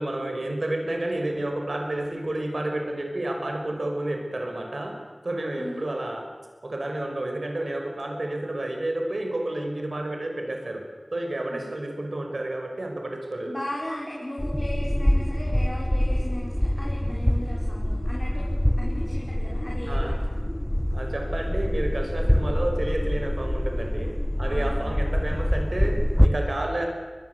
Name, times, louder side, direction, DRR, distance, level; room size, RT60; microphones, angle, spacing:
voice 1, 0.0-5.0 5.2-6.2 6.6-10.8 11.1-13.6 19.9-20.1 20.9-24.1 24.4-26.9, right 1 dB, 70° right, 3 dB, 5.5 m, -30 dB
voice 2, 13.4-18.5 18.8-20.1 24.5-24.9, left 1 dB, 30° left, -3 dB, 5.9 m, -36 dB
sound 1, 14.4-26.3, equal, 15° left, 1.7 m, -25 dB
23.0 x 21.5 x 8.2 m, 1.4 s
wide cardioid pair, 45°, 0 cm